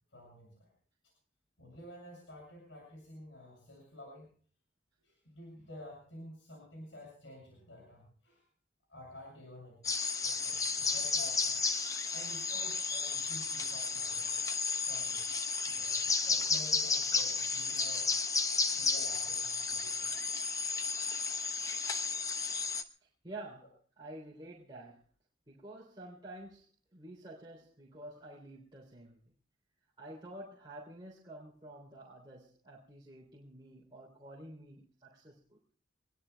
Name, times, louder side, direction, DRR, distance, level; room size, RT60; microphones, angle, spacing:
voice 1, 0.1-0.7 1.6-4.3 5.0-8.4 8.9-9.8 10.2-11.6 12.1-14.3 14.9-15.2 15.6-18.1 18.7-20.6, left 1 dB, 85° left, -2 dB, 7.3 m, -51 dB
sound 1, 9.8-22.8, left 4 dB, 20° left, 0.9 m, -33 dB
voice 2, 23.0-25.0 25.5-29.2 30.0-35.6, right 1 dB, 25° right, -3 dB, 3.4 m, -50 dB
25.5 x 20.5 x 2.3 m, 0.44 s
head